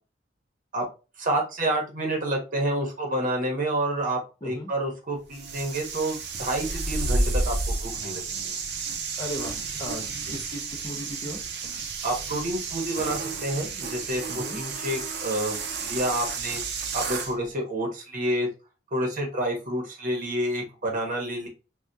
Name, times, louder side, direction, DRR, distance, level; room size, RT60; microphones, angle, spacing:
voice 1, 1.2-8.5 12.0-15.6 15.8-16.6 16.9-18.5 18.9-21.5, right 1 dB, 45° right, 1 dB, 0.9 m, -29 dB
voice 2, 4.4-4.7 9.2-10.0 10.3-11.4 14.3-14.6, equal, 25° left, 1 dB, 0.5 m, -36 dB
sound 1, 5.3-17.3, right 3 dB, 65° right, 0.6 m, -31 dB
3.4 x 2.3 x 2.6 m, 0.31 s
head